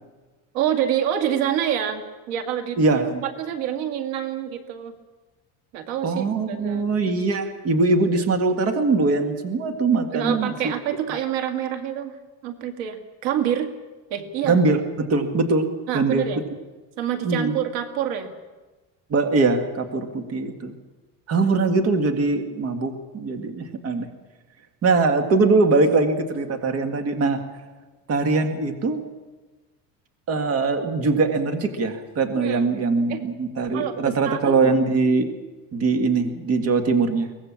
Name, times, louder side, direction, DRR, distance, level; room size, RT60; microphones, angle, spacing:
voice 1, 0.5-2.8 3.1-4.9 5.7-6.9 10.1-12.2 12.4-13.7 14.1-14.6 15.9-16.4 17.0-18.3 32.3-32.7 33.1-33.2 33.7-34.7, right 10 dB, 90° right, 6 dB, 2.4 m, -27 dB
voice 2, 2.8-3.2 6.0-10.7 14.4-15.7 15.9-16.2 17.2-17.6 19.1-20.8 21.3-24.1 24.8-27.4 28.1-29.0 30.3-35.3 35.7-37.3, right 3 dB, 35° right, 6 dB, 2.0 m, -22 dB
23.5 x 19.0 x 7.4 m, 1.2 s
cardioid pair, 165°, 39 cm